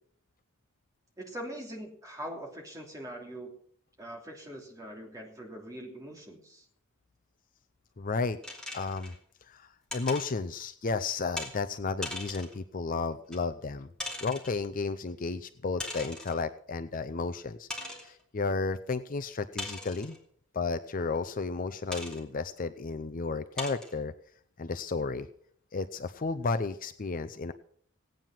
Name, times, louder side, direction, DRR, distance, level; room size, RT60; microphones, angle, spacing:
voice 1, 1.2-3.5 4.0-6.6, right 1 dB, 15° right, 0 dB, 3.0 m, -42 dB
voice 2, 8.0-8.4 8.7-9.1 9.5-13.9 14.2-17.7 18.0-20.2 20.5-24.1 24.6-25.3 25.7-27.5, left 4 dB, 40° left, 10 dB, 0.5 m, -33 dB
sound 1, 8.4-9.2 9.9-10.3 11.4-11.5 12.0-12.6 13.3-13.4 14.0-14.6 15.8-16.4 16.9-17.0 17.7-18.1 19.6-20.2 21.9-22.2 22.9-23.0 23.6-23.9, left 2 dB, 5° left, 2.8 m, -39 dB
17.5 x 9.2 x 5.9 m, 0.63 s
head